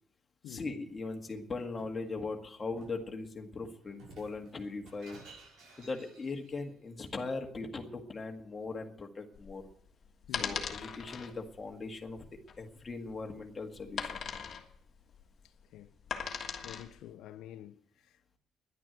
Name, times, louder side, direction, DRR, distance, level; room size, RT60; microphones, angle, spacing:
voice 1, 0.5-5.2 5.8-9.6 10.4-12.2 12.6-14.2, left 3 dB, 20° left, 1.8 m, -39 dB
Shatter, 1.2-2.0 2.8-3.1 3.9-6.6, right 2 dB, 65° right, 6.7 m, -55 dB
sound 1, 9.4-17.0, left 6 dB, 45° left, 1.6 m, -40 dB
voice 2, 15.4-15.9 16.6-18.4, left 12 dB, 90° left, 0.6 m, -49 dB
11.0 x 10.0 x 9.2 m
cardioid pair, 155°, 0 cm